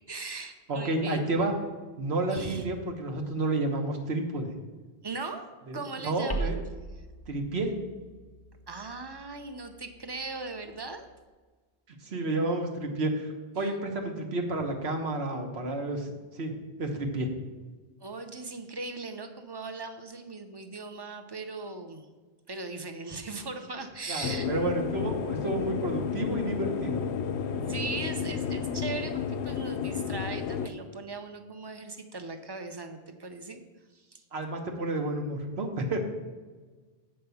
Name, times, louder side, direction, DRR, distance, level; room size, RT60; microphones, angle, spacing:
voice 1, 0.1-1.2 2.3-2.7 5.0-5.5 5.7-6.5 7.0-7.1 8.7-11.1 13.6-13.7 18.0-22.1 22.5-24.5 27.7-33.6 33.9-34.2, right 3 dB, 25° right, 7 dB, 0.6 m, -39 dB
voice 2, 0.7-1.5 2.0-4.5 5.7-6.6 7.3-7.8 12.0-17.3 24.1-27.0 34.3-36.0, right 2 dB, 70° right, 3 dB, 1.4 m, -31 dB
sound 1, 6.3-11.1, right 3 dB, 5° left, 0.9 m, -40 dB
sound 2, 24.2-30.7, left 7 dB, 80° left, 0.8 m, -32 dB
7.7 x 5.5 x 6.9 m, 1.3 s
omnidirectional pair, 1.1 m